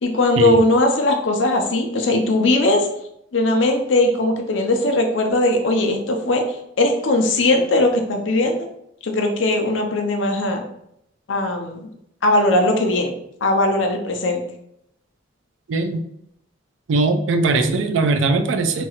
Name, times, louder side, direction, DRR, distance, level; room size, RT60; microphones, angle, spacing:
voice 1, 0.0-2.9 3.3-6.4 6.8-8.7 9.0-10.6 11.3-11.9 12.2-13.1 13.4-14.4 17.5-17.6, left 2 dB, 70° left, 3 dB, 0.5 m, -19 dB
voice 2, 15.7-16.0 16.9-18.9, right 3 dB, 70° right, 8 dB, 0.4 m, -20 dB
2.9 x 2.3 x 3.0 m, 0.75 s
head